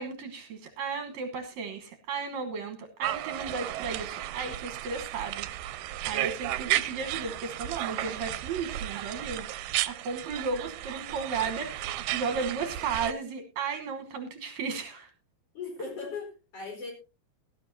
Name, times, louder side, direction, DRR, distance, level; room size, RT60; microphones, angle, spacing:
voice 1, 0.0-9.5 9.9-15.1, right 5 dB, 60° right, 5 dB, 2.3 m, -35 dB
sound 1, 3.0-13.1, right 14 dB, 80° right, 2.2 m, -34 dB
voice 2, 15.5-16.9, left 4 dB, 45° left, 2 dB, 5.3 m, -38 dB
18.0 x 12.0 x 2.7 m, 0.31 s
omnidirectional pair, 4.0 m